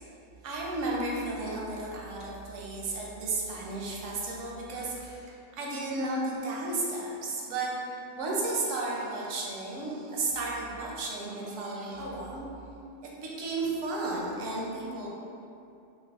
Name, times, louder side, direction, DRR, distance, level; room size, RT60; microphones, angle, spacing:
voice 1, 0.4-12.4 13.2-15.1, right 2 dB, 85° right, -3 dB, 1.0 m, -33 dB
5.7 x 2.0 x 2.4 m, 2.7 s
omnidirectional pair, 1.3 m